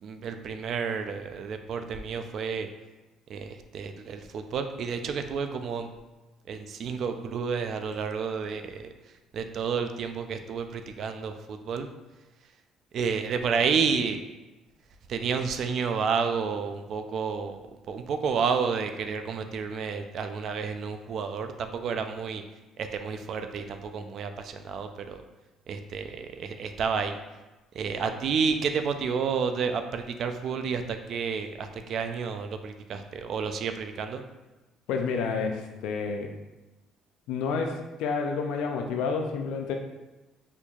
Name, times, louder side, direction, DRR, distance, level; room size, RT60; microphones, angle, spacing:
voice 1, 0.0-2.7 3.3-5.9 6.5-8.9 9.3-11.9 12.9-14.2 15.1-22.4 22.8-25.2 25.7-27.2 27.7-34.2, right 6 dB, 60° right, 7 dB, 0.3 m, -30 dB
voice 2, 34.9-36.3 37.3-39.7, left 5 dB, 85° left, 4 dB, 0.4 m, -29 dB
4.4 x 2.6 x 2.3 m, 1.1 s
cardioid pair, 100°, 0 cm